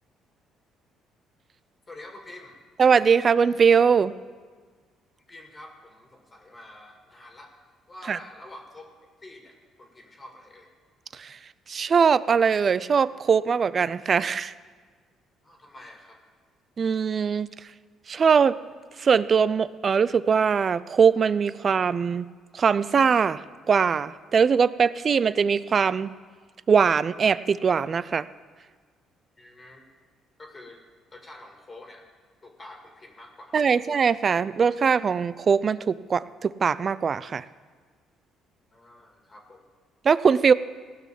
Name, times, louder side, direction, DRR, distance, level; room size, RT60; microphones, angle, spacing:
voice 1, 1.9-2.6 5.3-7.5 7.9-8.9 9.2-10.7 15.4-16.3 29.4-29.8 30.4-30.8 31.1-32.1 32.4-33.6 38.7-39.7, left 1 dB, 25° left, 1 dB, 2.0 m, -47 dB
voice 2, 2.8-4.1 8.1-8.2 11.1-11.4 11.7-14.5 16.8-17.5 18.1-18.6 19.0-22.3 22.5-26.1 26.7-28.3 33.5-37.4 40.0-40.5, right 6 dB, 40° right, 17 dB, 0.4 m, -21 dB
16.5 x 6.3 x 8.4 m, 1.5 s
cardioid pair, 105°, 0 cm